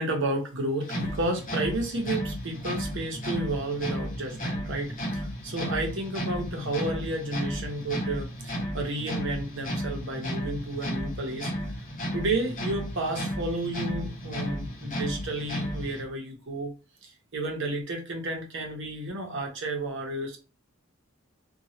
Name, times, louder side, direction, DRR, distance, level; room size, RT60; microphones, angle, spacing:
voice 1, 0.0-11.5 12.1-16.7 17.0-20.4, right 2 dB, 60° right, 1 dB, 0.9 m, -32 dB
sound 1, 0.8-16.0, equal, 40° left, 0.8 m, -33 dB
3.0 x 2.3 x 2.8 m, 0.31 s
head